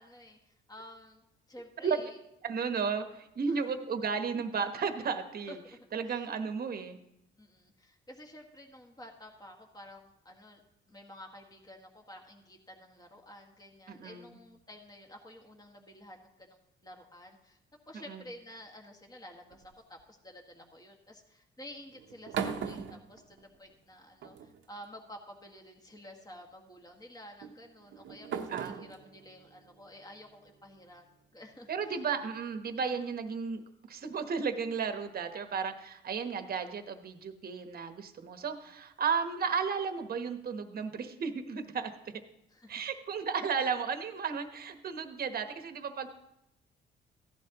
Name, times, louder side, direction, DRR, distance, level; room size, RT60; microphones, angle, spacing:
voice 1, 0.0-2.2 3.5-3.7 5.5-6.2 7.4-10.6 10.9-17.6 17.9-31.1 31.3-32.0 42.5-42.8, left 1 dB, 20° left, 1 dB, 1.8 m, -51 dB
voice 2, 2.4-5.6 5.9-7.0 13.9-14.4 17.9-18.2 28.5-28.8 31.7-41.9 42.7-46.1, right 6 dB, 50° right, 8 dB, 1.1 m, -34 dB
sound 1, 19.5-20.0 21.9-23.8 24.2-24.9 25.9-26.2 27.4-30.7, right 7 dB, 75° right, 0.9 m, -40 dB
15.0 x 11.0 x 3.0 m, 0.86 s
cardioid pair, 90°, 20 cm